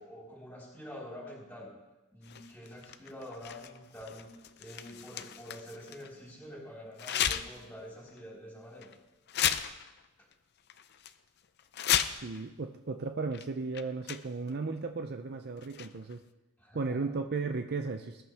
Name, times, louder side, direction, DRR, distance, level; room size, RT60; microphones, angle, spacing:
voice 1, 0.0-1.7 2.1-4.3 4.6-8.9 10.2-10.3 16.6-17.1, equal, 5° left, -5 dB, 4.2 m, -47 dB
sound 1, 2.2-6.1 7.0-7.7 8.1-8.2 8.8-8.9 9.3-10.3 10.7-11.1 11.6-12.4 13.3-13.4 13.7-14.5 15.6-16.1, left 9 dB, 45° left, 0.6 m, -34 dB
voice 2, 12.0-16.2 16.7-18.2, right 4 dB, 45° right, 6 dB, 0.6 m, -35 dB
20.5 x 11.0 x 3.5 m, 1.1 s
head